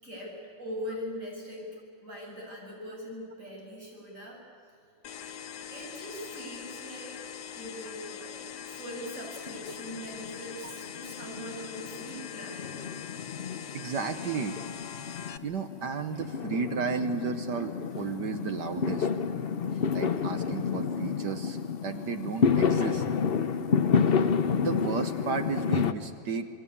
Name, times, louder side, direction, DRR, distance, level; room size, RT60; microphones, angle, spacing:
voice 1, 0.0-1.7 2.0-4.4 5.7-7.2 7.5-12.8, equal, 40° right, -2 dB, 7.7 m, -41 dB
sound 1, 5.0-15.4, left 8 dB, 65° left, 1.4 m, -42 dB
Fireworks, 9.5-10.4 10.7-25.9, left 6 dB, 50° left, 0.7 m, -30 dB
voice 2, 13.7-14.6 15.4-19.1 19.9-21.6 21.8-23.0 24.6-26.5, right 5 dB, 65° right, 8 dB, 1.5 m, -33 dB
27.5 x 22.0 x 8.5 m, 2.6 s
omnidirectional pair, 2.0 m